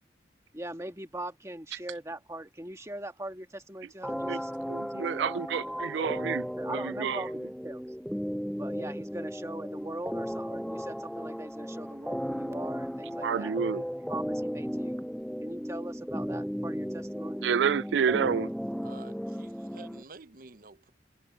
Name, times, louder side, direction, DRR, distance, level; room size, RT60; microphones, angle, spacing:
voice 1, 0.5-6.3 6.6-7.8 8.6-13.6 14.1-15.0 15.4-17.5, right 1 dB, 15° right, 1.7 m, -41 dB
sound 1, 4.0-20.0, equal, ahead, 0.6 m, -35 dB
voice 2, 4.7-7.2 13.2-13.8 17.4-18.5, right 7 dB, 80° right, 0.4 m, -29 dB
voice 3, 18.8-20.9, right 3 dB, 50° right, 0.9 m, -50 dB
head